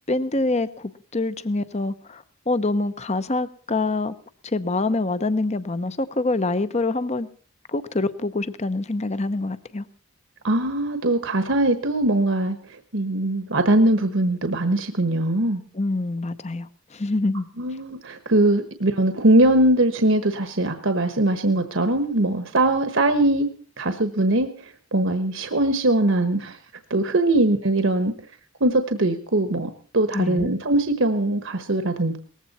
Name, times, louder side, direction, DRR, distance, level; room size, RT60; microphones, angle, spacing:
voice 1, 0.1-4.1 4.4-7.3 7.7-9.8 15.7-17.5 30.1-30.5, left 2 dB, 30° left, 14 dB, 0.7 m, -25 dB
voice 2, 10.4-12.6 12.9-15.6 17.6-23.5 23.8-26.6 26.9-28.1 28.6-32.2, right 1 dB, 60° right, 9 dB, 1.2 m, -21 dB
19.0 x 15.0 x 4.2 m, 0.41 s
head